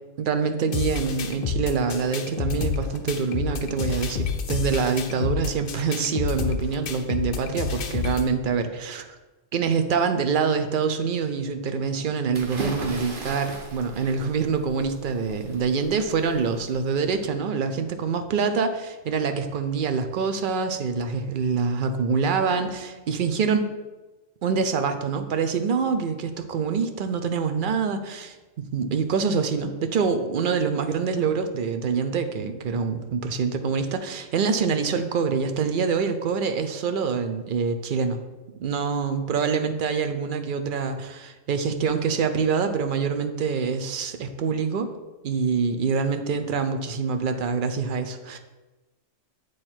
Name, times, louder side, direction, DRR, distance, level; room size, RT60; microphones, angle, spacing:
voice 1, 0.2-9.1 9.5-23.6 24.4-38.2 38.6-44.9 45.2-48.4, right 5 dB, 65° right, 7 dB, 0.5 m, -25 dB
sound 1, 0.7-8.3, left 6 dB, 55° left, 0.7 m, -29 dB
sound 2, 12.3-17.2, right 1 dB, 45° right, 1.0 m, -38 dB
8.7 x 3.2 x 4.4 m, 1.1 s
omnidirectional pair, 1.3 m